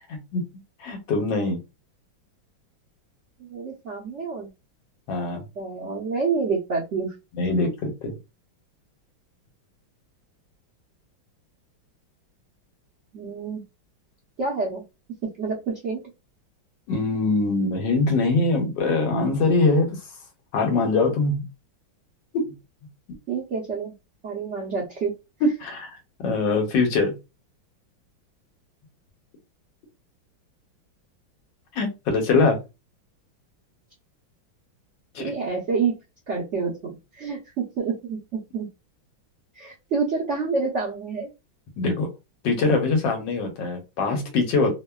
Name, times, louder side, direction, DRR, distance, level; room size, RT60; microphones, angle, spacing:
voice 1, 0.1-0.4 0.8-1.6 5.1-5.4 7.4-8.1 16.9-20.0 20.5-21.5 22.3-22.5 25.4-25.9 26.2-27.2 31.7-32.6 35.1-35.3 41.8-42.1 42.4-44.8, left 3 dB, 75° left, 4 dB, 1.3 m, -23 dB
voice 2, 3.4-4.5 5.6-7.1 13.1-13.6 14.4-14.8 15.4-16.0 23.3-23.9 24.2-25.1 35.2-36.0 36.3-38.7 39.5-41.3, right 4 dB, 90° right, -3 dB, 0.6 m, -28 dB
3.1 x 2.1 x 2.2 m, 0.26 s
omnidirectional pair, 2.2 m